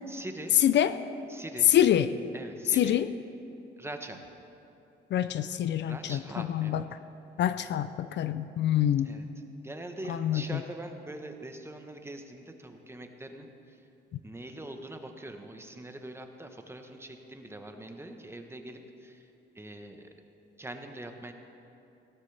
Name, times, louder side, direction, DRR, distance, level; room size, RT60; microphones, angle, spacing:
voice 1, 0.1-0.5 1.3-1.7 2.3-3.0 3.8-4.2 5.8-6.8 9.0-9.3 9.6-13.8 14.2-19.3 19.5-20.1 20.6-21.3, right 1 dB, 10° right, 5 dB, 1.1 m, -43 dB
voice 2, 0.6-0.9 1.7-2.1 2.8-3.1 5.1-6.8 7.4-9.1 10.1-10.6, left 11 dB, 65° left, 12 dB, 0.5 m, -26 dB
17.0 x 12.5 x 3.4 m, 2.8 s
cardioid pair, 90°, 20 cm